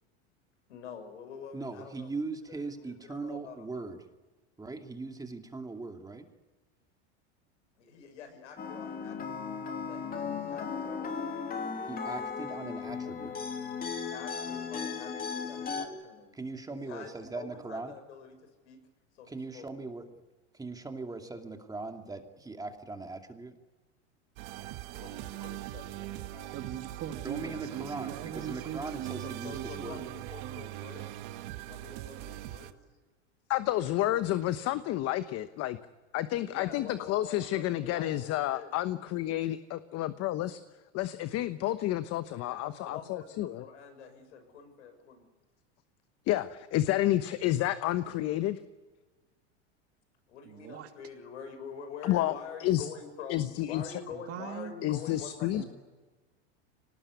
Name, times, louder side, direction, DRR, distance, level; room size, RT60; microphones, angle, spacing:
voice 1, 0.7-2.1 2.5-3.9 7.8-9.6 9.8-11.2 13.9-16.4 16.7-18.8 19.1-19.7 25.0-26.6 29.2-31.1 31.6-32.7 36.4-38.7 42.4-45.3 50.3-55.7, left 6 dB, 85° left, 6.6 m, -46 dB
voice 2, 1.5-4.0 4.6-6.3 11.9-13.3 16.3-17.9 19.3-20.1 20.5-23.6 25.4-25.5 27.2-30.1, right 3 dB, 10° right, 2.5 m, -40 dB
sound 1, 8.6-15.9, left 6 dB, 25° left, 3.2 m, -36 dB
sound 2, 24.4-32.7, right 15 dB, 60° right, 1.7 m, -42 dB
voice 3, 26.5-31.1 31.9-32.5 50.4-50.9 54.3-54.7 55.6-55.7, right 10 dB, 40° right, 2.8 m, -41 dB
voice 4, 33.5-35.8 36.1-40.6 40.9-43.6 46.2-48.6 52.0-52.3 52.6-52.9 53.3-54.0 54.8-55.6, left 14 dB, 45° left, 1.1 m, -30 dB
23.5 x 19.5 x 9.7 m
supercardioid pair, 115°, 35 cm